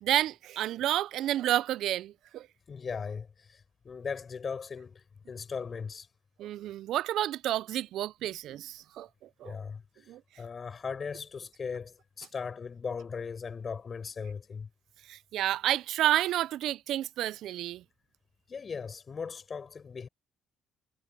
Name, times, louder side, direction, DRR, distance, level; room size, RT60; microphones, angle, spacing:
voice 1, 0.0-2.5 6.4-9.1 9.4-9.5 10.1-10.2 15.1-17.8, right 13 dB, 75° right, 0.5 m, -30 dB
voice 2, 2.7-6.1 9.4-10.1 10.4-14.7 18.5-20.1, left 5 dB, 40° left, 7.6 m, -38 dB
supercardioid pair, 65°, 0 cm